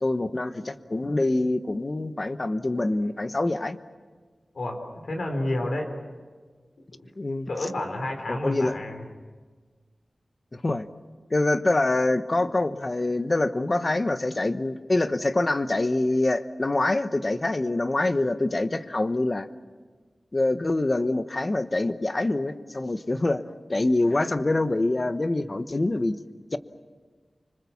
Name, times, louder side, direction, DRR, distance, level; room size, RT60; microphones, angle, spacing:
voice 1, 0.0-3.8 7.2-7.5 8.3-8.8 10.5-10.9 11.3-19.5 20.3-23.4 23.7-26.2 26.5-26.6, left 2 dB, 35° left, 11 dB, 1.0 m, -25 dB
voice 2, 4.5-5.9 7.5-9.0, left 1 dB, 75° left, 3 dB, 4.2 m, -30 dB
25.5 x 25.5 x 7.2 m, 1.4 s
wide cardioid pair, 95°, 0 cm